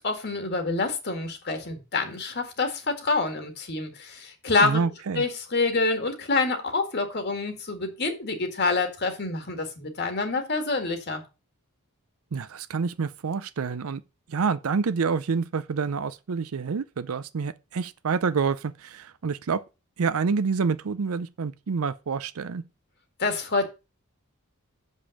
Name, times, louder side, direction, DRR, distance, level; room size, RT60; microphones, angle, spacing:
voice 1, 0.0-4.8 5.2-11.2 23.2-23.6, left 3 dB, 50° left, 1.9 m, -27 dB
voice 2, 4.6-5.3 12.3-14.0 14.3-19.6 20.0-22.6, right 5 dB, 80° right, 0.5 m, -27 dB
7.0 x 5.5 x 6.4 m
head